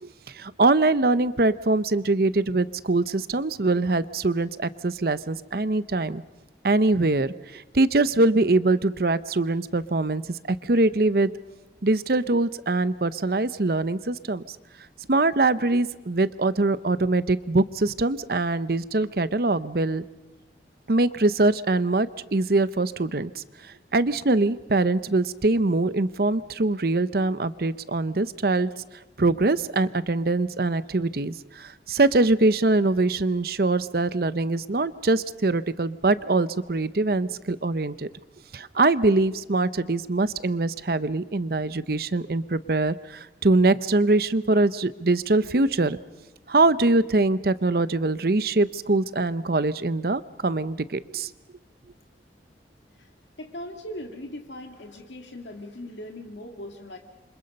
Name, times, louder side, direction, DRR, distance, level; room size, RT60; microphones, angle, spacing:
voice 1, 0.0-6.2 6.6-11.3 11.8-14.4 15.1-20.0 20.9-23.4 23.9-28.7 29.2-38.1 38.5-46.0 46.5-51.3, right 2 dB, 55° right, 15 dB, 0.8 m, -23 dB
voice 2, 53.4-57.0, left 1 dB, 85° left, 3 dB, 2.2 m, -39 dB
28.0 x 25.5 x 5.4 m, 1.1 s
head